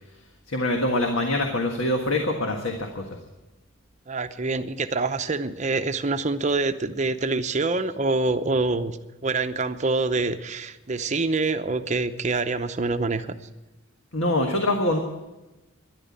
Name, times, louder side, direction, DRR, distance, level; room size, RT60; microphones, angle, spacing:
voice 1, 0.5-3.0 14.1-15.0, left 1 dB, 75° left, 3 dB, 1.6 m, -24 dB
voice 2, 4.1-13.4, right 3 dB, 35° right, 9 dB, 0.7 m, -26 dB
12.5 x 11.5 x 8.4 m, 1.1 s
head